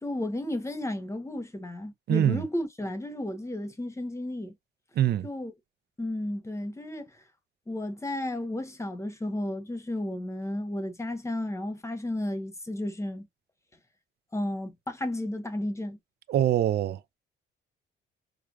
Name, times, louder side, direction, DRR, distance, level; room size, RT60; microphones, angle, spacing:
voice 1, 0.0-4.5 5.2-5.5 6.0-7.2 7.7-13.3 14.3-16.0, left 1 dB, 15° left, 1.0 m, -33 dB
voice 2, 2.1-2.4 5.0-5.3 16.3-17.0, right 11 dB, 55° right, 0.4 m, -24 dB
4.7 x 2.3 x 2.4 m
cardioid pair, 90°, 20 cm